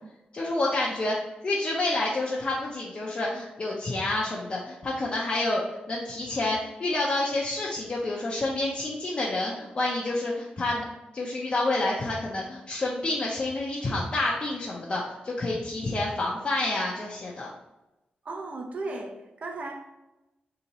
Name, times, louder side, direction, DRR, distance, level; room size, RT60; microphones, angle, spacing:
voice 1, 0.3-1.2 1.4-10.9 11.1-17.5, left 2 dB, 35° left, -5 dB, 0.5 m, -28 dB
voice 2, 18.2-19.9, right 2 dB, 45° right, 2 dB, 0.6 m, -36 dB
2.8 x 2.8 x 4.0 m, 0.99 s
wide cardioid pair, 125°, 3 cm